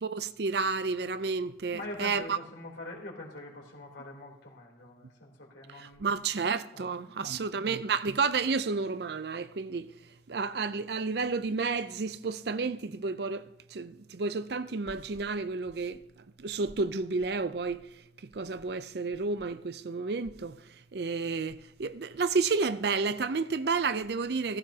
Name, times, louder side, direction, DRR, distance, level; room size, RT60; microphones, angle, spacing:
voice 1, 0.0-2.2 5.8-9.9 10.3-13.4 13.7-16.0 16.4-17.9 18.3-20.6 20.9-24.6, right 4 dB, 60° right, 0.5 m, -31 dB
voice 2, 1.7-6.4 6.7-7.5, left 2 dB, 80° left, 3.5 m, -45 dB
15.5 x 15.0 x 2.9 m
head